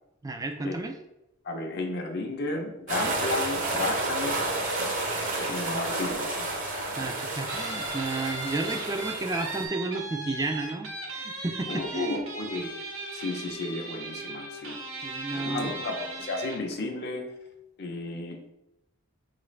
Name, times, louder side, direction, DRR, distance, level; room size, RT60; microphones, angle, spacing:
voice 1, 0.2-1.0 7.0-12.2 15.0-15.7, right 2 dB, 15° right, 5 dB, 0.3 m, -32 dB
voice 2, 1.4-4.3 5.5-6.5 11.7-12.8 13.1-14.8 15.3-17.3 17.8-18.5, left 2 dB, 50° left, 3 dB, 0.6 m, -33 dB
sound 1, 2.9-9.6, right 2 dB, 40° right, 0.8 m, -31 dB
Guitar, 7.5-16.7, right 2 dB, 75° right, 1.0 m, -37 dB
5.7 x 2.5 x 3.1 m, 0.90 s
head